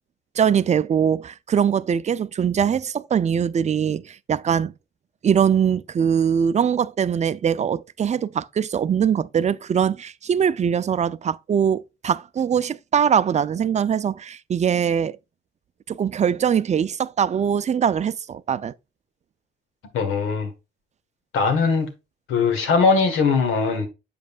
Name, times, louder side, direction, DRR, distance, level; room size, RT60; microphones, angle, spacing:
voice 1, 0.4-4.7 5.2-15.2 15.9-18.7, right 8 dB, 35° right, 0.4 m, -22 dB
voice 2, 19.9-20.5 21.3-21.9 22.3-23.9, left 4 dB, 90° left, 1.7 m, -20 dB
7.7 x 5.3 x 2.4 m
cardioid pair, 90°, 20 cm